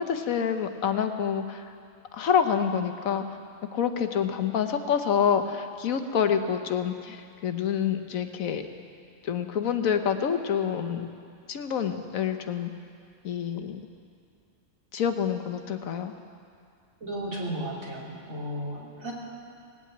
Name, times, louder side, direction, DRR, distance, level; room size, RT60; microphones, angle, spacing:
voice 1, 0.0-1.7 2.1-3.2 3.7-8.6 9.2-11.1 11.5-12.7 13.2-13.8 14.9-16.1, left 7 dB, 85° left, 7 dB, 1.3 m, -27 dB
voice 2, 17.0-19.1, right 1 dB, 80° right, -4 dB, 3.3 m, -34 dB
18.5 x 8.8 x 8.6 m, 2.4 s
omnidirectional pair, 1.4 m